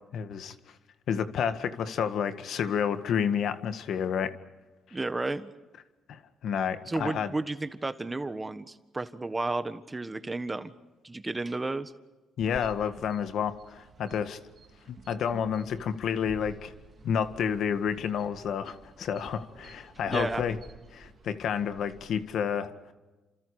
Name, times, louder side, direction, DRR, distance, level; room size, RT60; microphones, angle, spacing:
voice 1, 0.1-0.5 1.1-4.3 6.1-7.3 12.4-14.4 14.9-16.7 17.0-20.6 20.9-22.7, left 7 dB, 70° left, 10 dB, 1.8 m, -30 dB
voice 2, 4.9-5.5 6.9-10.7 11.0-11.9 20.1-20.4, right 2 dB, 20° right, 11 dB, 1.5 m, -32 dB
sound 1, 12.4-22.2, right 4 dB, 45° right, 2.5 m, -52 dB
30.0 x 27.0 x 5.0 m, 1.2 s
cardioid pair, 90°, 0 cm